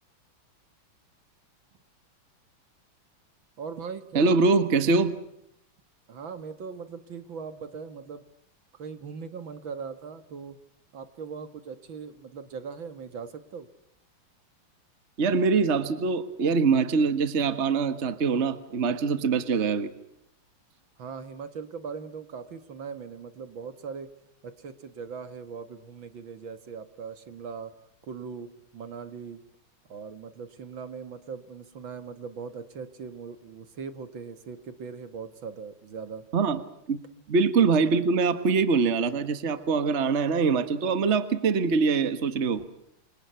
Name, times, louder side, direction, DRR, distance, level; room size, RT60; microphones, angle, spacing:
voice 1, 3.6-4.4 6.1-8.2 8.7-10.6 10.9-13.7 21.0-24.1 24.4-27.7 28.0-28.5 28.7-29.4 29.9-36.2, right 5 dB, 65° right, 11 dB, 2.4 m, -40 dB
voice 2, 4.1-5.1 15.2-19.9 36.3-36.6 36.9-37.0 37.3-42.7, right 4 dB, 35° right, 11 dB, 1.7 m, -23 dB
29.0 x 25.5 x 5.8 m, 0.74 s
omnidirectional pair, 2.3 m